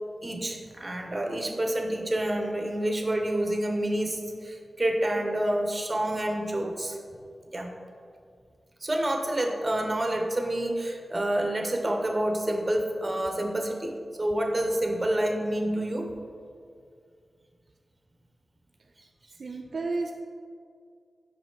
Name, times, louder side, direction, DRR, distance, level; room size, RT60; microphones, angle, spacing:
voice 1, 0.2-7.0 7.5-7.7 8.8-16.1, right 1 dB, 30° right, 2 dB, 0.8 m, -28 dB
voice 2, 19.4-20.1, right 3 dB, 65° right, 3 dB, 0.3 m, -31 dB
5.3 x 4.8 x 3.9 m, 2.3 s
cardioid pair, 65°, 0 cm